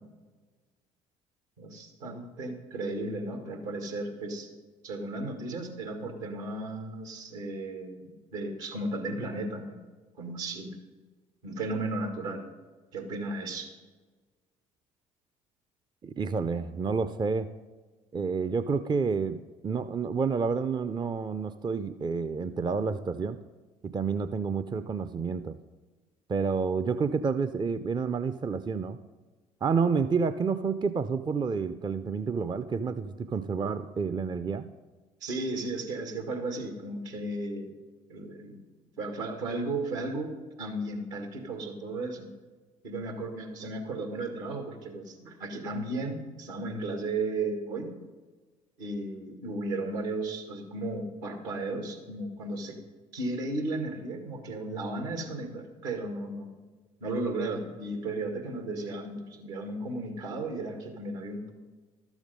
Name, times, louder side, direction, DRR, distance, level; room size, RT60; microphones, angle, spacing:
voice 1, 1.6-4.5 4.8-9.8 10.2-10.8 11.4-12.5 12.9-13.7 35.2-37.8 38.1-38.6 39.0-42.3 42.8-48.0 48.8-52.8 53.1-56.5 57.0-61.5, right 2 dB, 75° right, 4 dB, 1.9 m, -35 dB
voice 2, 16.0-17.5 18.1-23.4 23.8-25.6 26.3-29.0 29.6-34.7, right 5 dB, 25° right, 12 dB, 0.5 m, -29 dB
12.5 x 7.1 x 5.3 m, 1.3 s
hypercardioid pair, 55°, 17 cm